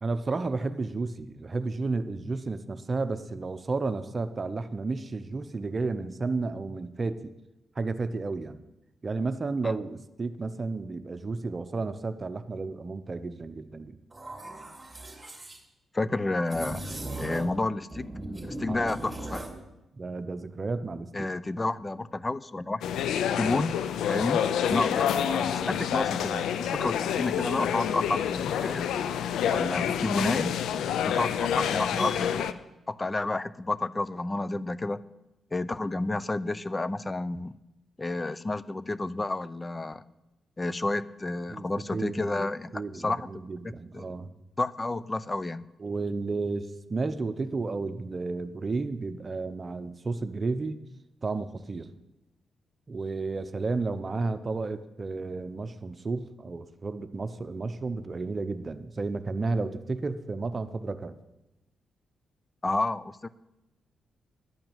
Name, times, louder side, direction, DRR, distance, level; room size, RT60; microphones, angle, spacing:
voice 1, 0.0-7.3 7.8-8.6 9.0-14.0 18.7-18.9 20.0-21.3 41.5-42.5 42.7-44.3 45.8-50.8 51.2-51.9 52.9-61.2, right 3 dB, 40° right, 11 dB, 0.8 m, -32 dB
sound 1, 14.1-15.6 16.5-17.6 17.9-19.6, right 1 dB, 20° right, 2.8 m, -38 dB
voice 2, 15.9-16.8 17.1-18.1 18.4-19.4 21.1-22.8 23.4-23.8 24.1-24.4 24.7-28.9 29.5-30.5 31.1-32.5 32.9-35.0 35.5-37.5 38.0-40.0 40.6-43.3 43.6-44.1 44.6-45.7 62.6-63.3, left 2 dB, 25° left, 17 dB, 0.6 m, -30 dB
sound 2, 22.8-32.5, left 9 dB, 85° left, 0.5 m, -28 dB
11.0 x 5.8 x 9.0 m, 0.96 s
supercardioid pair, 55°, 0 cm